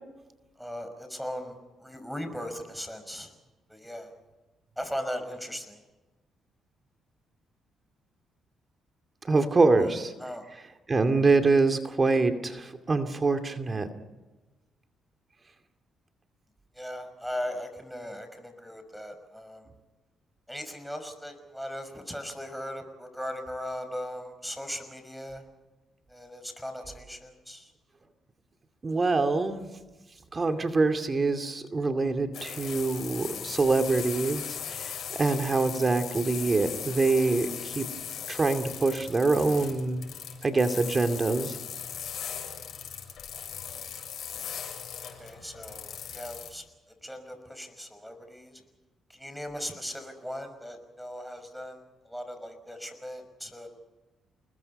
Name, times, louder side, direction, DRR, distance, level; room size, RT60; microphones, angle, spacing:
voice 1, 0.6-3.3 3.7-4.1 4.8-5.8 9.8-10.4 16.7-19.7 20.5-25.4 26.1-27.7 44.3-44.5 45.2-46.7 47.0-48.6 49.1-53.7, equal, ahead, 7 dB, 5.7 m, -38 dB
voice 2, 9.2-10.1 10.9-13.9 28.8-29.7 30.3-37.9 38.3-40.0 40.4-41.6, right 3 dB, 30° right, 7 dB, 2.4 m, -25 dB
sound 1, 32.3-46.5, left 8 dB, 65° left, 7.4 m, -39 dB
29.0 x 21.0 x 5.5 m, 1.1 s
cardioid pair, 90°, 0 cm